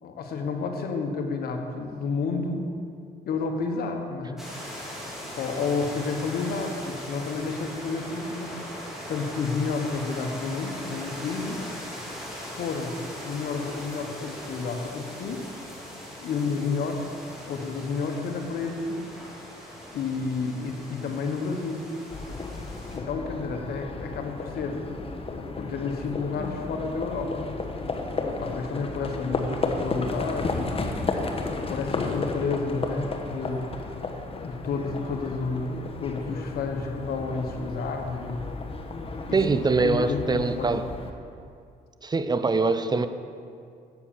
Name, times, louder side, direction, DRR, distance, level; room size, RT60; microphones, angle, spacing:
voice 1, 0.0-2.7 3.3-4.4 5.4-8.6 9.1-11.6 12.5-15.4 16.2-17.1 17.4-19.1 19.9-21.9 22.9-24.9 25.3-27.5 28.3-30.8 31.5-33.6 34.4-38.4 39.3-39.4 39.8-40.8, left 4 dB, 75° left, 4 dB, 1.2 m, -30 dB
sound 1, 4.4-23.0, equal, ahead, 2.9 m, -40 dB
Livestock farm animals working animals, 22.1-41.1, left 3 dB, 35° left, 1.2 m, -33 dB
voice 2, 39.3-40.8 42.0-43.1, right 3 dB, 25° right, 11 dB, 0.6 m, -23 dB
8.2 x 7.1 x 7.2 m, 2.3 s
supercardioid pair, 70°, 16 cm